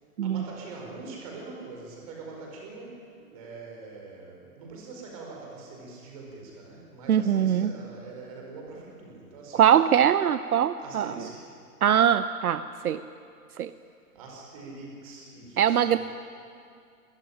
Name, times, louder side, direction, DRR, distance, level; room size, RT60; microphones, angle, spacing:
voice 1, 0.2-3.0 3.3-9.7 10.8-11.4 14.1-16.0, right 3 dB, 25° right, -1 dB, 4.8 m, -43 dB
voice 2, 7.1-7.7 9.5-11.2 11.8-13.0 13.6-13.7 15.6-16.0, right 9 dB, 70° right, 13 dB, 0.8 m, -22 dB
27.5 x 15.5 x 10.0 m, 2.4 s
hypercardioid pair, 180°, 45 cm